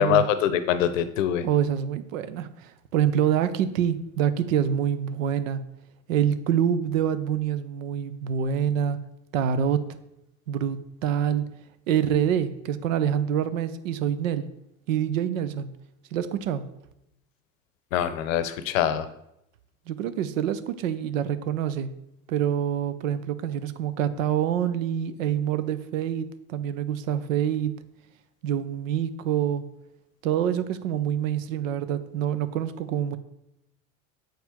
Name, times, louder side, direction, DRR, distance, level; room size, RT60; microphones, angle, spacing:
voice 1, 0.0-1.5 17.9-19.1, left 10 dB, 85° left, 12 dB, 0.7 m, -23 dB
voice 2, 1.4-5.6 6.1-9.0 9.3-9.8 10.5-11.4 11.9-14.4 14.9-15.7 16.1-16.6 19.9-21.9 22.3-27.7 28.4-29.6 30.2-33.2, right 9 dB, 85° right, 13 dB, 0.6 m, -26 dB
7.6 x 4.5 x 3.5 m, 0.83 s
hypercardioid pair, 80°, 39 cm